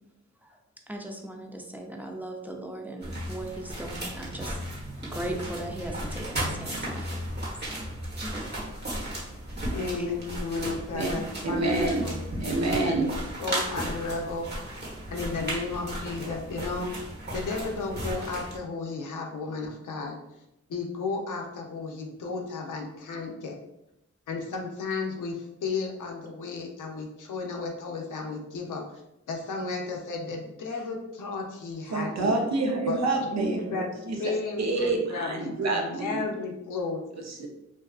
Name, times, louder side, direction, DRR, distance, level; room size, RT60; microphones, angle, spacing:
voice 1, 0.9-4.6 5.0-7.8 8.2-8.7 9.9-10.1 11.1-11.7, right 1 dB, 5° right, 1 dB, 0.5 m, -39 dB
sound 1, 3.0-18.6, right 1 dB, 35° right, 1.0 m, -35 dB
voice 2, 9.7-12.2 12.8-13.1 13.4-14.5 15.1-16.9 17.3-20.2 20.7-23.6 24.3-28.8 29.3-32.4 32.8-33.9 34.2-37.0, left 4 dB, 85° left, 1 dB, 0.5 m, -33 dB
voice 3, 11.4-12.0 12.4-13.1 31.9-34.2 34.6-36.3 37.2-37.5, right 3 dB, 60° right, 2 dB, 0.6 m, -27 dB
2.5 x 2.3 x 2.3 m, 0.85 s
cardioid pair, 50°, 30 cm